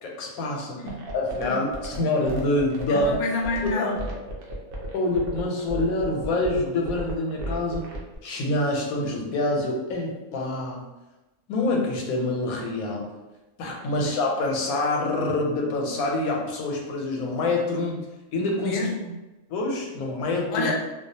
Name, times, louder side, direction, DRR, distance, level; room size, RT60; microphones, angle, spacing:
voice 1, 0.0-0.9 1.1-3.2 3.6-4.0 4.9-7.9 8.2-10.8 11.5-13.1 13.6-18.0 18.3-18.8 19.5-20.7, left 2 dB, 90° left, 0 dB, 1.0 m, -26 dB
sound 1, 0.9-8.2, right 1 dB, 60° right, 0.6 m, -35 dB
voice 2, 2.9-3.9 13.9-14.0 18.5-19.1 20.5-20.8, left 3 dB, 65° left, -1 dB, 0.7 m, -28 dB
2.3 x 2.3 x 2.6 m, 1.0 s
omnidirectional pair, 1.5 m